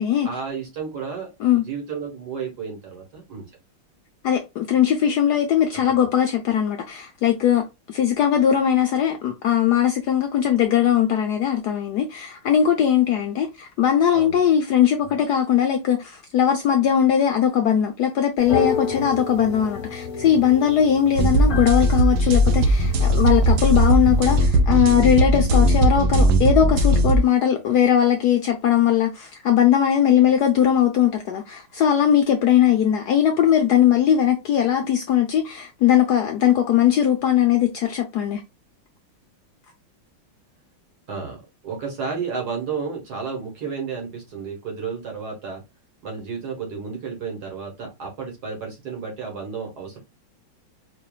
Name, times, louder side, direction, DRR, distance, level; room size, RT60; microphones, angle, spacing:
voice 1, 0.2-3.5 14.1-14.4 15.0-15.1 41.1-41.4 41.6-45.6 46.0-50.0, right 5 dB, 55° right, 1.9 m, -32 dB
voice 2, 4.2-38.4, left 9 dB, 70° left, 1.0 m, -19 dB
sound 1, 18.4-24.4, left 6 dB, 45° left, 1.2 m, -31 dB
sound 2, 21.2-27.2, right 1 dB, 70° right, 1.4 m, -18 dB
4.9 x 2.9 x 2.3 m
omnidirectional pair, 2.2 m